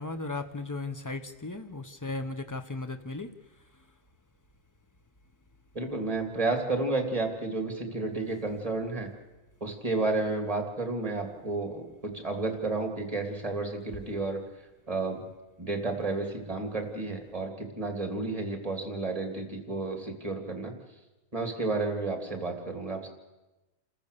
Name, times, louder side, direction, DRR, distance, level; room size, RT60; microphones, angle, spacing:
voice 1, 0.0-3.3, left 3 dB, 20° left, 8 dB, 0.5 m, -36 dB
voice 2, 5.7-9.1 9.6-14.4 14.9-15.2 15.6-20.7 21.3-23.1, right 3 dB, 20° right, 4 dB, 2.7 m, -31 dB
28.5 x 14.0 x 6.8 m, 1.1 s
omnidirectional pair, 1.7 m